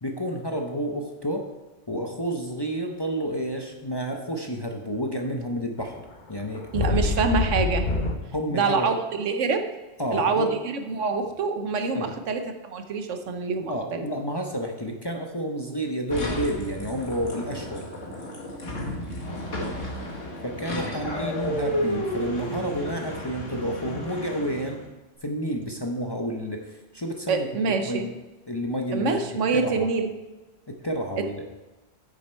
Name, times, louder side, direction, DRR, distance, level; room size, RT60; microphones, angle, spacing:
voice 1, 0.0-1.4 1.9-7.1 8.3-8.9 10.0-10.5 11.9-12.1 13.7-17.8 20.4-24.8 25.2-28.1 28.5-29.2 29.5-29.9 30.7-31.5, equal, 25° left, 1 dB, 0.7 m, -30 dB
sound 1, 5.8-5.9 6.3-8.2, left 3 dB, 40° left, 1.0 m, -25 dB
voice 2, 6.7-7.9 8.5-9.7 10.1-14.0 27.3-28.1 28.9-30.1 31.2-31.3, right 4 dB, 80° right, 7 dB, 1.2 m, -26 dB
sound 2, 16.1-24.8, equal, 80° left, 2.0 m, -32 dB
9.0 x 7.1 x 4.4 m, 1.1 s
omnidirectional pair, 1.3 m